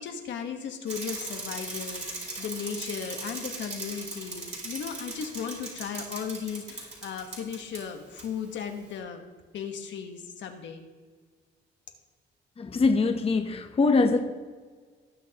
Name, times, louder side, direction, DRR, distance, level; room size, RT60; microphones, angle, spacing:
voice 1, 0.0-9.2 9.5-10.9, left 7 dB, 70° left, 4 dB, 1.2 m, -36 dB
Bicycle, 0.9-7.8 8.2-8.3, right 2 dB, 35° right, 3.3 m, -38 dB
voice 2, 12.6-14.2, left 3 dB, 30° left, 5 dB, 0.8 m, -23 dB
18.5 x 6.3 x 2.9 m, 1.5 s
cardioid pair, 90°, 19 cm